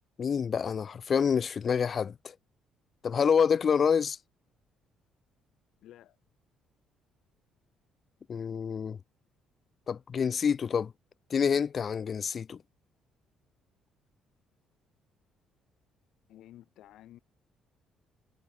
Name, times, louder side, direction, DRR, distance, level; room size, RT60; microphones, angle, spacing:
voice 1, 0.2-2.3 3.0-4.2 8.3-9.0 9.9-10.9 11.3-12.6, left 6 dB, 35° left, 0.5 m, -27 dB
voice 2, 5.8-6.2 16.3-17.2, left 13 dB, 70° left, 7.9 m, -53 dB
cardioid pair, 155°, 0 cm